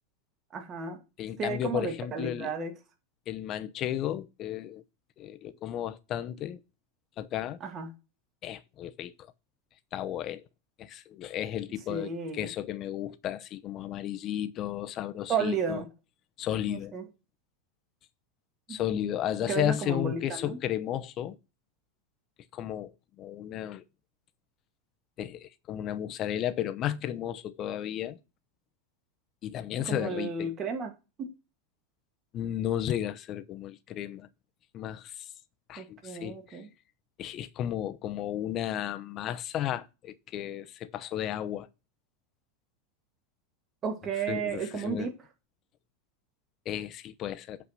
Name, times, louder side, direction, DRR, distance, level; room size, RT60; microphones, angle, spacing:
voice 1, 0.5-1.0 1.4-2.7 7.6-7.9 11.9-12.5 15.3-15.9 16.7-17.1 18.7-19.1 19.5-20.6 29.8-30.9 31.2-31.3 35.8-36.7 43.8-45.1, right 5 dB, 30° right, 2.1 m, -33 dB
voice 2, 1.2-2.5 3.3-4.8 5.2-6.6 7.2-7.6 8.4-9.1 9.9-10.4 10.8-15.8 16.4-16.9 18.7-21.4 22.5-22.9 23.2-23.8 25.2-28.2 29.4-30.5 32.3-34.3 34.7-35.3 35.7-36.6 37.2-41.7 44.3-45.1 46.7-47.6, left 11 dB, 40° left, 0.8 m, -33 dB
8.2 x 4.8 x 5.7 m
supercardioid pair, 130°, 0 cm